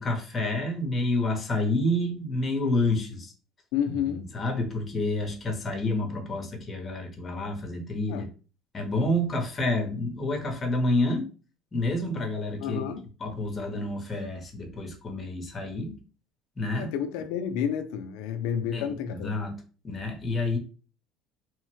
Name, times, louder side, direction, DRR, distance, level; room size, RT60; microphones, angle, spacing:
voice 1, 0.0-3.3 3.9-8.3 8.7-11.3 11.7-12.9 13.2-16.0 16.6-16.9 18.7-20.6, left 1 dB, 20° left, 0.7 m, -29 dB
voice 2, 3.7-4.3 8.1-8.3 12.6-13.0 16.7-19.3, left 8 dB, 80° left, 0.3 m, -30 dB
3.0 x 2.0 x 3.0 m
cardioid pair, 150°, 0 cm